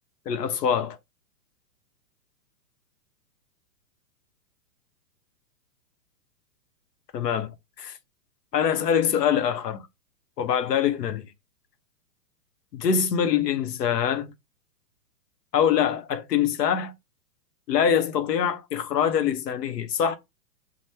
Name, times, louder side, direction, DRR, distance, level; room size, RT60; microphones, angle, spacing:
voice 1, 0.3-1.0 7.1-7.5 7.8-7.9 8.5-9.8 10.4-11.2 12.7-14.3 15.5-16.9 17.7-20.2, left 8 dB, 90° left, 0.8 m, -24 dB
2.9 x 2.1 x 3.2 m
hypercardioid pair, 145°, 47 cm